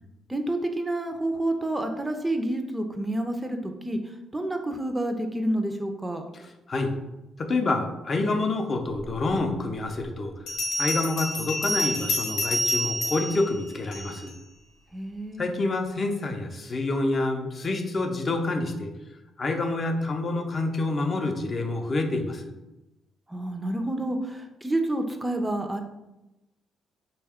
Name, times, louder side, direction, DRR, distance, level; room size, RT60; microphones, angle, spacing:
voice 1, 0.3-4.0 4.3-6.2 14.9-15.5 23.3-25.8, right 1 dB, 15° right, 5 dB, 0.4 m, -29 dB
voice 2, 6.3-6.9 7.4-10.3 10.8-14.3 15.4-18.9 19.4-22.5, left 2 dB, 40° left, 4 dB, 0.5 m, -27 dB
Bell, 10.5-14.3, equal, 85° left, 0.9 m, -29 dB
3.5 x 2.2 x 3.4 m, 0.97 s
cardioid pair, 90°, 0 cm